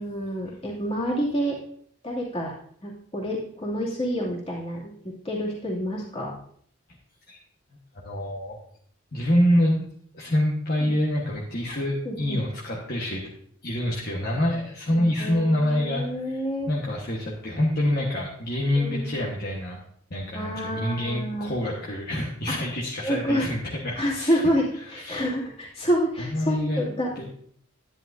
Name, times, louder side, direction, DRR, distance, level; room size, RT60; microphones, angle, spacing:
voice 1, 0.0-1.6 2.0-2.5 2.8-4.9 5.2-6.3 10.8-10.9 12.0-12.4 14.9-16.7 18.8-19.2 20.3-21.5 23.0-23.5 24.0-27.3, equal, 25° left, -4 dB, 2.5 m, -28 dB
voice 2, 7.9-8.6 9.1-9.9 10.1-13.2 13.6-19.8 20.1-24.5 24.8-25.2 26.2-26.8 27.2-27.3, left 1 dB, 45° left, -4 dB, 1.3 m, -26 dB
10.5 x 10.5 x 2.7 m, 0.63 s
head